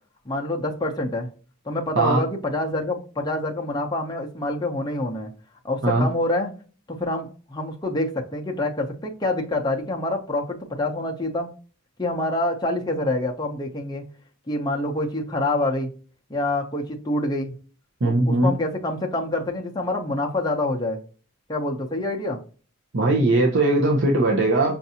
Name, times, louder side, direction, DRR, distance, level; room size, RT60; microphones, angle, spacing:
voice 1, 0.3-1.3 1.6-5.3 5.6-6.5 6.9-11.5 12.0-14.0 14.5-15.9 16.3-17.5 18.0-21.0 21.5-22.4, left 1 dB, 20° left, 0.6 m, -26 dB
voice 2, 18.0-18.5 22.9-24.8, right 2 dB, 60° right, 0.7 m, -19 dB
5.6 x 2.6 x 2.7 m
head